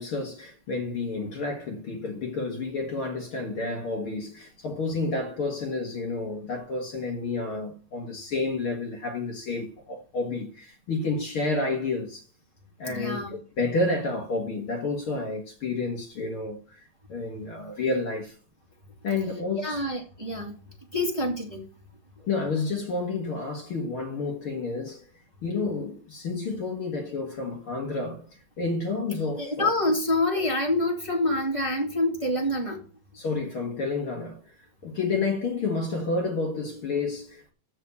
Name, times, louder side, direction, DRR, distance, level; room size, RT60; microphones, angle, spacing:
voice 1, 0.0-12.2 12.8-16.8 17.1-18.3 19.0-19.8 22.2-25.0 25.4-28.2 28.6-29.7 33.1-34.4 34.8-37.5, left 3 dB, 75° left, 1.2 m, -30 dB
voice 2, 12.8-13.3 19.6-20.5 20.9-21.6 29.4-32.8, left 1 dB, 15° right, 1.0 m, -26 dB
7.2 x 6.9 x 8.1 m
omnidirectional pair, 4.7 m